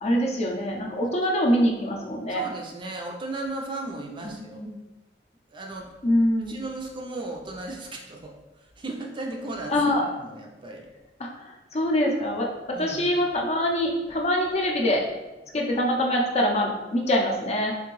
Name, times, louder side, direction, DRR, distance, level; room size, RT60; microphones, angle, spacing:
voice 1, 0.0-2.4 4.5-4.7 6.0-6.6 9.7-10.0 11.2-11.3 11.7-12.5 12.8-15.0 15.5-17.7, equal, 40° left, 0 dB, 0.5 m, -24 dB
voice 2, 2.3-4.6 5.5-5.9 6.5-8.3 8.8-10.9 12.7-13.1, right 2 dB, 30° right, 1 dB, 0.4 m, -36 dB
3.8 x 2.6 x 3.0 m, 1.0 s
head